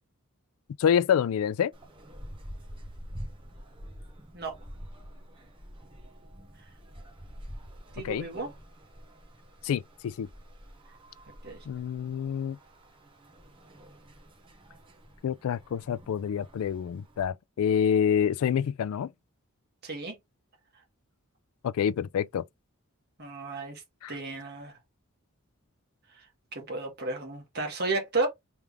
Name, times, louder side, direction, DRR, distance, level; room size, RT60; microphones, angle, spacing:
voice 1, 0.8-1.7 8.0-8.3 9.6-10.3 11.7-12.6 15.2-19.1 21.6-22.4 24.0-24.1, left 8 dB, 75° left, 0.3 m, -27 dB
sound 1, 1.7-17.3, equal, 25° right, 1.0 m, -47 dB
voice 2, 7.9-8.5 11.4-11.6 19.8-20.2 23.2-23.8 24.1-24.8 26.2-26.3 26.5-28.3, right 3 dB, 45° right, 1.6 m, -33 dB
3.4 x 3.4 x 3.3 m
head